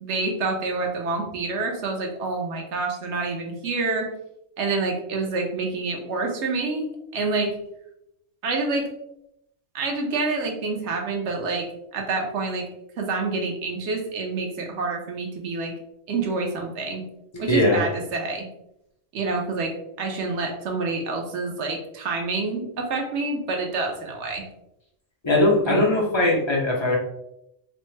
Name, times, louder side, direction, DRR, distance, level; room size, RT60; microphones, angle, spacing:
voice 1, 0.0-4.1 4.6-6.9 7.1-7.5 8.4-8.9 9.7-11.7 11.9-12.6 13.0-15.7 16.1-17.0 17.4-18.5 19.1-19.7 20.0-24.4 25.6-25.8, right 3 dB, 65° right, 2 dB, 0.9 m, -27 dB
voice 2, 17.3-17.8 25.2-27.0, left 2 dB, 40° left, -4 dB, 0.4 m, -20 dB
3.1 x 2.0 x 3.2 m, 0.81 s
omnidirectional pair, 1.4 m